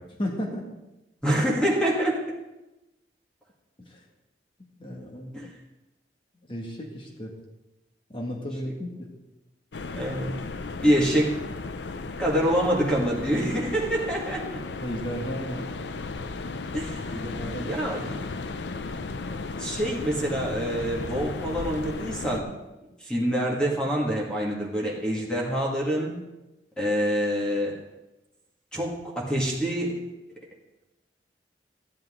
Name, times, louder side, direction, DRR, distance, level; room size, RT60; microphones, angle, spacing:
voice 1, 0.2-0.7 3.8-4.0 4.8-5.3 6.5-7.3 8.1-9.1 14.8-15.7 17.1-18.2, equal, 30° left, 0 dB, 1.9 m, -34 dB
voice 2, 1.2-2.3 5.3-5.5 9.9-10.3 10.8-11.3 12.2-14.4 16.7-18.2 19.6-22.6 23.0-26.2 26.8-27.8 28.7-30.1, equal, 5° left, -3 dB, 2.0 m, -26 dB
sound 1, 9.7-22.4, left 3 dB, 75° left, 0.6 m, -35 dB
13.5 x 11.0 x 3.8 m, 1.0 s
head